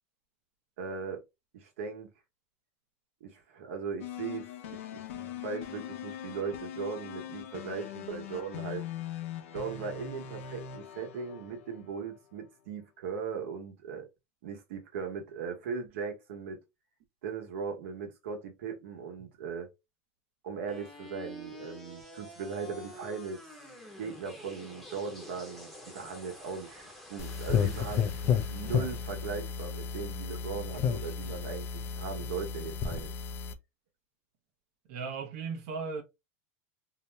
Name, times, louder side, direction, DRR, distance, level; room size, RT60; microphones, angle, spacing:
voice 1, 0.8-1.2 1.5-2.1 3.2-8.8 9.5-14.1 14.4-16.6 17.2-19.7 20.4-23.6 24.0-28.1 28.5-33.1, right 5 dB, 75° right, 1.1 m, -38 dB
sound 1, 4.0-12.2, left 9 dB, 85° left, 0.7 m, -42 dB
sound 2, 20.7-30.7, left 1 dB, ahead, 0.9 m, -49 dB
sound 3, 27.2-33.5, left 7 dB, 25° left, 0.4 m, -32 dB
voice 2, 34.9-36.0, right 5 dB, 50° right, 0.7 m, -36 dB
2.7 x 2.1 x 3.3 m
supercardioid pair, 160°, 7 cm